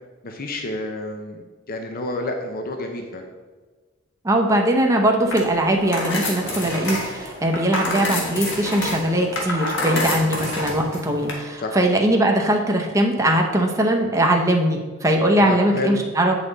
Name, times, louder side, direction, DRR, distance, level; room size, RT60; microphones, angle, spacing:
voice 1, 0.2-3.3 11.6-11.7 15.3-16.0, left 2 dB, 45° left, 4 dB, 0.7 m, -29 dB
voice 2, 4.2-16.3, right 1 dB, 15° right, 1 dB, 0.7 m, -20 dB
sound 1, 5.2-11.3, left 2 dB, 65° left, 1.6 m, -28 dB
8.3 x 5.5 x 4.0 m, 1.3 s
head